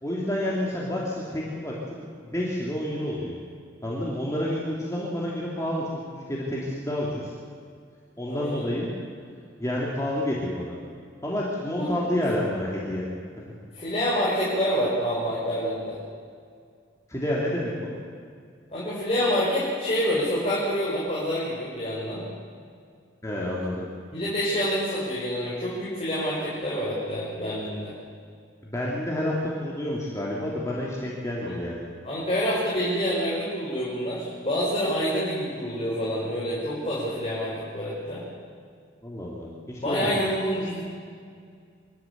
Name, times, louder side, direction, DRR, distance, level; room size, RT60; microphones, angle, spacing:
voice 1, 0.0-3.4 3.8-7.3 8.2-8.9 9.6-10.7 11.2-13.0 17.1-18.0 23.2-23.9 28.6-31.9 39.0-40.2, left 1 dB, 15° left, -5 dB, 2.9 m, -29 dB
voice 2, 8.3-8.6 11.8-12.0 13.7-16.0 18.7-22.2 24.1-27.9 31.4-31.6 32.0-38.2 39.8-40.8, equal, 35° left, -8 dB, 5.5 m, -27 dB
26.0 x 13.0 x 8.2 m, 2.2 s
head